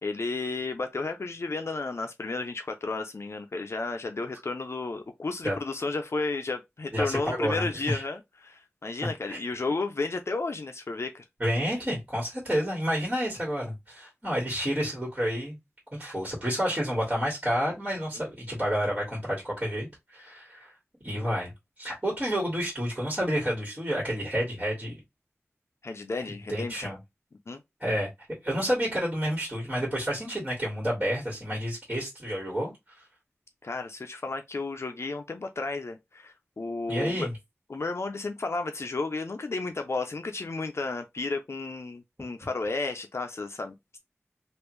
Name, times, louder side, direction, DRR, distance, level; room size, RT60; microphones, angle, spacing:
voice 1, 0.0-11.2 18.1-18.2 25.8-26.9 27.5-27.6 33.6-37.3 37.7-44.0, left 3 dB, 65° left, 0.5 m, -33 dB
voice 2, 6.9-8.0 9.0-9.4 11.4-15.6 15.9-20.7 21.0-21.5 21.8-24.9 26.5-27.0 27.8-28.1 28.4-32.7 36.9-37.3, equal, 25° right, 1.8 m, -29 dB
3.3 x 2.5 x 3.1 m
wide cardioid pair, 60°, 5 cm